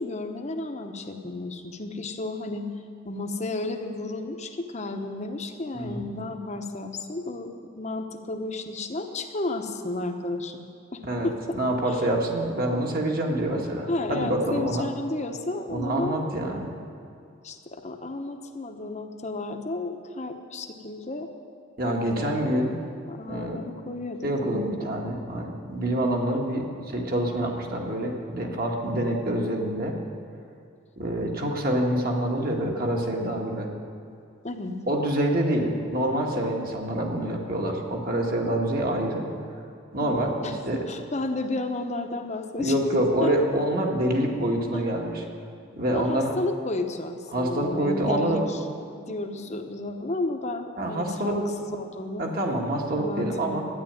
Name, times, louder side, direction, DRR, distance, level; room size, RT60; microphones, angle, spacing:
voice 1, 0.0-2.7 3.0-10.7 10.9-12.1 13.9-16.2 17.4-21.3 22.0-22.6 23.1-25.0 34.4-34.8 40.0-42.7 43.2-43.3 44.7-44.8 45.9-48.6 48.9-52.3 52.9-53.6, left 2 dB, 35° left, 5 dB, 1.0 m, -32 dB
voice 2, 11.0-14.9 15.7-16.7 21.8-22.8 23.3-23.6 24.2-29.9 31.0-33.7 34.9-39.3 39.9-40.8 42.6-45.2 45.8-46.3 47.3-48.4 50.8-51.4 52.2-53.6, right 1 dB, 45° right, 0 dB, 1.9 m, -26 dB
13.0 x 10.0 x 9.1 m, 2.5 s
head